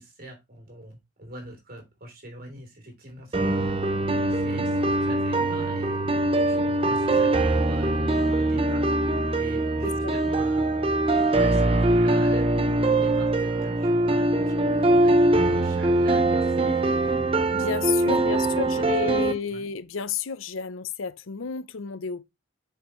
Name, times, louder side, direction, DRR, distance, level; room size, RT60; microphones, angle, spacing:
voice 1, 0.0-3.8 4.3-11.0 11.4-17.3 18.2-19.7, right 1 dB, 45° right, 3.3 m, -43 dB
sound 1, 3.3-19.3, right 2 dB, 30° right, 0.7 m, -22 dB
voice 2, 9.8-10.1 17.5-22.2, left 5 dB, 80° left, 0.6 m, -31 dB
7.8 x 5.7 x 3.1 m
head